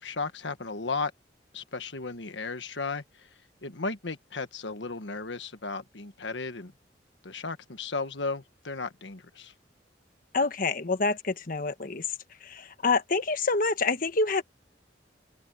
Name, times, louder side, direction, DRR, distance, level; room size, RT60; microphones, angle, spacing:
voice 1, 0.0-1.1 1.5-3.3 3.6-6.7 7.2-9.5, left 4 dB, 80° left, 1.4 m, -35 dB
voice 2, 10.3-12.1 12.4-14.4, left 3 dB, 50° left, 1.3 m, -27 dB
open air
head